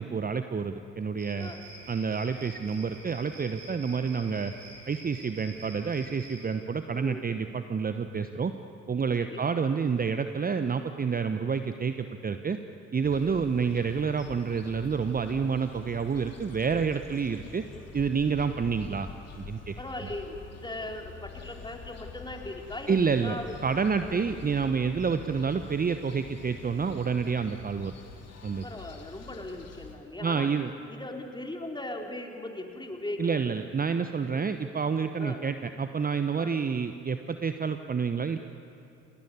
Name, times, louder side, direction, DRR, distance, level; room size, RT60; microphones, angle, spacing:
voice 1, 0.0-1.5 1.9-4.5 4.9-8.5 8.9-12.6 12.9-17.6 17.9-19.1 19.4-19.7 22.9-23.4 23.6-27.9 28.4-28.6 30.2-30.7 33.2-38.4, right 5 dB, 25° right, 9 dB, 1.1 m, -28 dB
sound 1, 1.2-6.5, right 2 dB, 80° right, 7.1 m, -48 dB
sound 2, 13.0-30.0, left 6 dB, 45° left, 3.4 m, -47 dB
voice 2, 19.8-23.5 24.0-24.1 28.6-30.5 30.9-33.4 35.2-35.4 36.4-36.6, left 1 dB, 15° left, 2 dB, 4.0 m, -39 dB
30.0 x 19.0 x 9.8 m, 2.9 s
figure-of-eight pair, 45°, 35 cm